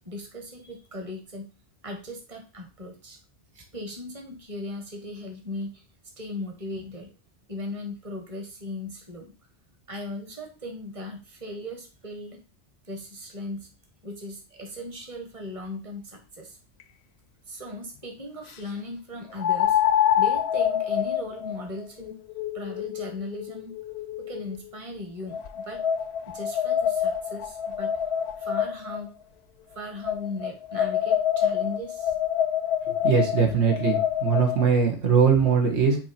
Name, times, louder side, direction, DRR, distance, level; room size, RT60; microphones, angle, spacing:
voice 1, 0.0-1.5 1.8-3.2 3.5-5.8 6.2-7.1 7.5-9.3 9.9-12.4 12.9-13.7 14.0-16.6 17.5-19.8 20.1-22.1 22.5-23.7 24.3-25.8 26.3-27.9 28.4-29.1 29.7-32.1, left 1 dB, 30° right, 2 dB, 1.5 m, -37 dB
sound 1, 16.8-16.9 19.4-24.6 25.3-29.0 30.0-34.6, left 9 dB, 75° left, 0.9 m, -26 dB
voice 2, 32.9-36.0, right 6 dB, 80° right, 2 dB, 1.7 m, -21 dB
8.9 x 3.1 x 4.3 m, 0.32 s
omnidirectional pair, 1.1 m